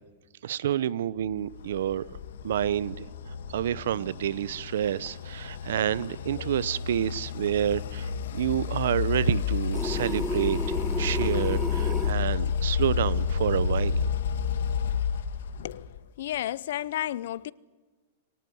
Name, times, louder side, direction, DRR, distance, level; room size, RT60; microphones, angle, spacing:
voice 1, 0.4-2.0 2.4-3.1 3.5-14.0, right 10 dB, 70° right, 0.8 m, -28 dB
sound 1, 1.5-16.0, left 7 dB, 80° left, 1.9 m, -30 dB
sound 2, 9.7-12.1, equal, ahead, 1.3 m, -32 dB
voice 2, 16.2-17.5, left 12 dB, 60° left, 0.7 m, -32 dB
23.5 x 18.0 x 9.4 m
supercardioid pair, 170°, 0 cm